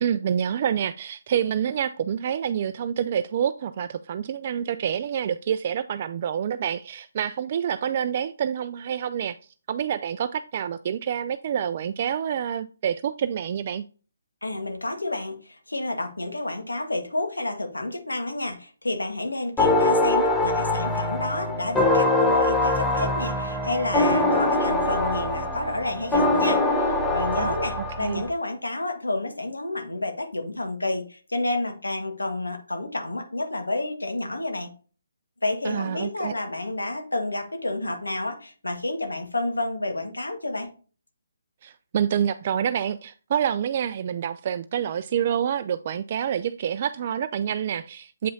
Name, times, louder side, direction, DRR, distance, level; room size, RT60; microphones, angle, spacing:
voice 1, 0.0-9.4 9.7-13.8 27.4-28.2 35.6-36.3 41.6-48.3, right 9 dB, 40° right, 0.3 m, -27 dB
voice 2, 14.4-34.7 35.4-40.7, left 2 dB, 85° left, 1.5 m, -30 dB
sound 1, 19.6-28.3, left 2 dB, 10° left, 0.9 m, -23 dB
sound 2, 20.8-26.7, right 2 dB, 15° right, 1.9 m, -38 dB
7.6 x 5.4 x 2.7 m
figure-of-eight pair, 145°, 0 cm